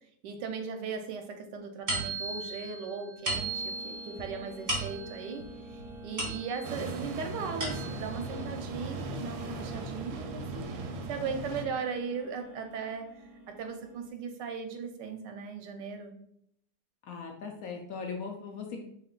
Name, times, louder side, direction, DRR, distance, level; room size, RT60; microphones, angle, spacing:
voice 1, 0.2-10.6 11.1-16.1, right 5 dB, 90° right, 6 dB, 1.2 m, -38 dB
sound 1, 1.9-6.9 7.3-8.2, right 2 dB, 25° right, 0.9 m, -36 dB
sound 2, 3.3-14.1, right 1 dB, ahead, 0.4 m, -48 dB
sound 3, 6.6-11.6, right 2 dB, 70° right, 1.0 m, -38 dB
voice 2, 17.0-18.8, left 5 dB, 70° left, 2 dB, 0.9 m, -39 dB
4.7 x 3.2 x 2.2 m, 0.71 s
omnidirectional pair, 1.8 m